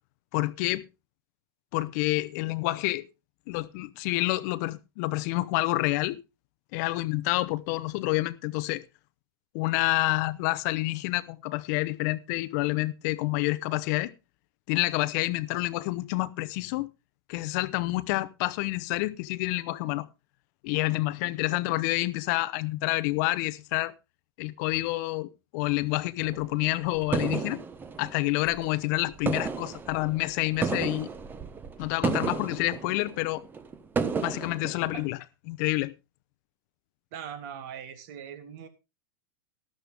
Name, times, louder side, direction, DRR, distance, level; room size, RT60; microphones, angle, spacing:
voice 1, 0.3-0.8 1.7-3.1 3.5-6.2 6.7-8.8 9.5-14.1 14.7-16.9 17.3-20.1 20.6-23.9 24.4-27.6 28.0-31.1 31.8-33.4 34.2-35.2 35.5-35.9, left 20 dB, 50° left, 0.8 m, -28 dB
sound 1, 26.2-28.9 29.1-35.1, right 5 dB, 15° right, 1.1 m, -33 dB
voice 2, 37.1-38.7, right 8 dB, 55° right, 2.1 m, -40 dB
12.5 x 12.0 x 3.5 m
hypercardioid pair, 130°, 12 cm